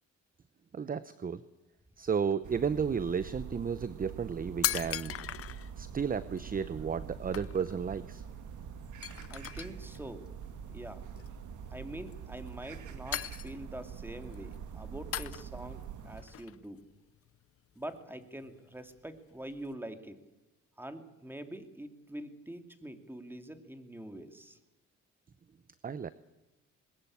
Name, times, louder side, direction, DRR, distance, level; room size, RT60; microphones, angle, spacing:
voice 1, 0.7-1.4 2.0-5.1 5.8-8.2 25.8-26.1, right 6 dB, 30° right, 15 dB, 0.7 m, -33 dB
sound 1, 2.3-2.4 2.9-3.2 3.9-4.0 4.2-5.7 6.4-6.5 6.9-7.1 7.3-7.8 8.1-8.2 8.5-8.6 9.0-10.0 11.1-11.5 12.1-12.8 13.1-13.9 14.2-14.6 15.1-15.8 16.2-17.5 17.8-19.7, left 10 dB, 50° left, 0.7 m, -39 dB
sound 2, 2.4-16.2, right 7 dB, 75° right, 2.1 m, -45 dB
voice 2, 9.3-10.2 10.7-11.0 11.7-16.8 17.8-20.2 20.8-24.6, right 1 dB, 5° right, 7 dB, 2.5 m, -45 dB
21.0 x 19.5 x 8.6 m, 1.0 s
cardioid pair, 90°, 30 cm